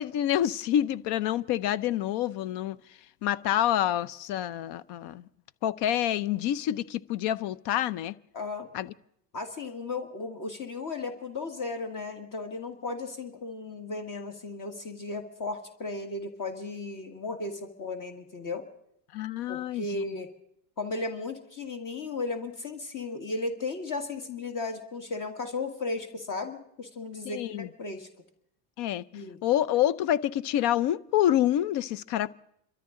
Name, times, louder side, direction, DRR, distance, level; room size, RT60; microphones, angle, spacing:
voice 1, 0.0-2.8 3.2-5.2 5.6-8.1 8.7-8.9 19.1-20.0 27.3-27.7 28.8-29.0 29.4-32.3, left 11 dB, 55° left, 0.7 m, -27 dB
voice 2, 8.3-8.7 9.3-18.7 19.5-20.3 20.8-28.1 29.1-29.4, left 3 dB, 40° left, 1.7 m, -35 dB
27.5 x 13.5 x 3.8 m
supercardioid pair, 95°, 49 cm